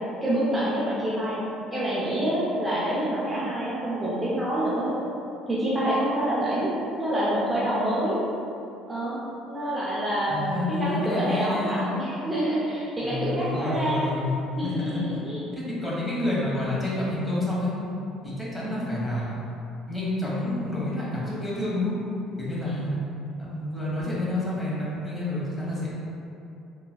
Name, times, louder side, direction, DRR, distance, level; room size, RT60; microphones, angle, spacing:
voice 1, 0.2-4.9 5.5-6.7 7.0-8.2 8.9-9.2 9.5-14.1 14.6-15.4, right 1 dB, 15° right, -9 dB, 0.8 m, -27 dB
voice 2, 10.3-11.9 13.0-15.2 15.5-17.7 18.2-19.4 19.9-21.9 22.4-23.0 23.4-26.0, left 1 dB, 15° left, -8 dB, 1.4 m, -29 dB
3.8 x 2.9 x 2.3 m, 2.8 s
hypercardioid pair, 65°, 0 cm